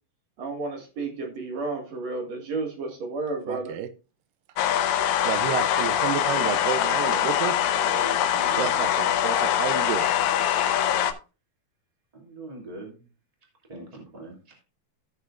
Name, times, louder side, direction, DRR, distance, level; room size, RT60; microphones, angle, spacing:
voice 1, 0.4-3.8, right 3 dB, 55° right, 2.9 m, -32 dB
voice 2, 3.5-3.9 5.3-7.6 8.6-10.1, right 10 dB, 90° right, 2.4 m, -30 dB
sound 1, 4.6-11.1, left 10 dB, 85° left, 2.5 m, -23 dB
voice 3, 7.8-8.8 12.1-13.0 13.7-14.5, right 1 dB, 10° right, 2.2 m, -41 dB
15.0 x 6.6 x 2.5 m
omnidirectional pair, 3.8 m